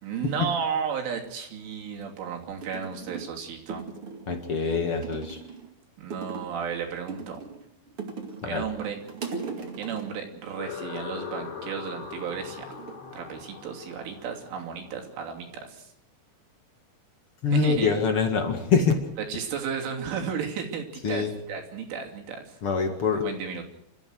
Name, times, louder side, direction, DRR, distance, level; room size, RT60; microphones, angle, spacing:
voice 1, 0.0-3.8 6.0-7.4 8.4-9.0 9.8-12.7 13.1-15.9 17.5-17.9 19.3-22.6 23.2-23.6, right 7 dB, 75° right, 2 dB, 5.3 m, -33 dB
sound 1, 2.6-3.4 3.7-4.4 5.0-5.7 6.1-6.6 7.1-8.5 8.8-10.2 11.8-12.2 12.7-13.8 14.1-14.6, right 5 dB, 40° right, 2.3 m, -39 dB
voice 2, 4.3-5.4 8.4-8.6 17.4-19.1 21.0-21.4 22.6-23.2, left 5 dB, 55° left, 5 dB, 1.6 m, -25 dB
sound 2, 10.6-15.2, left 6 dB, 75° left, 5.5 m, -40 dB
29.0 x 14.5 x 6.4 m, 0.79 s
omnidirectional pair, 5.6 m